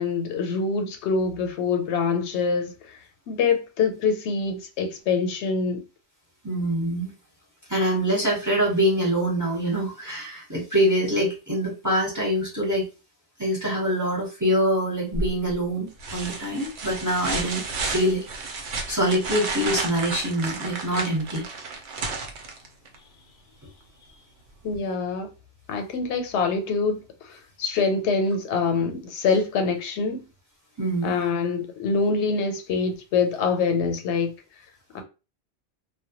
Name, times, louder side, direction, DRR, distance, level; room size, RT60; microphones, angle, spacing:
voice 1, 0.0-5.8 24.6-25.3 25.7-30.2 31.0-34.3 34.9-35.0, left 4 dB, 85° left, 0.9 m, -25 dB
voice 2, 6.4-7.1 7.7-12.8 13.4-18.2 18.9-21.4 30.8-31.1, equal, 20° right, 0.8 m, -24 dB
sound 1, 15.1-15.5 16.0-23.0 24.7-24.8, right 3 dB, 90° right, 0.9 m, -32 dB
2.2 x 2.0 x 2.7 m
omnidirectional pair, 1.1 m